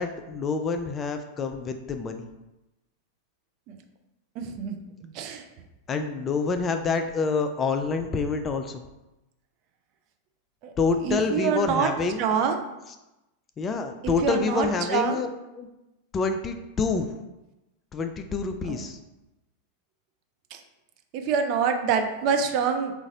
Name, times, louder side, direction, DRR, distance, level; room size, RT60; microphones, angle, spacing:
voice 1, 0.0-2.3 5.9-8.8 10.8-12.5 13.6-15.3 15.5-15.7 16.1-17.1 17.9-19.0, left 4 dB, 25° left, 7 dB, 0.3 m, -27 dB
voice 2, 4.4-4.8 5.1-5.4 10.6-10.7 11.0-11.9 12.2-12.6 14.2-15.2 18.7-18.8 21.1-22.9, right 6 dB, 40° right, 5 dB, 0.4 m, -25 dB
3.9 x 2.5 x 3.8 m, 0.98 s
figure-of-eight pair, 90°, 0 cm